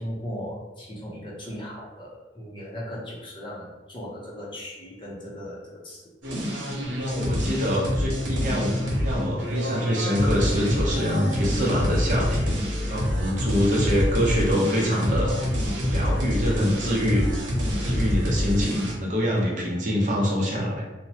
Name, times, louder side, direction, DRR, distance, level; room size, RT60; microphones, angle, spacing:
voice 1, 0.0-6.1, equal, 25° left, -5 dB, 0.6 m, -37 dB
sound 1, 6.2-18.9, equal, 85° right, 0.8 m, -26 dB
voice 2, 7.0-12.6 12.9-15.3 15.6-17.3 17.6-20.8, equal, 45° right, -3 dB, 0.6 m, -25 dB
2.8 x 2.0 x 2.7 m, 1.1 s
head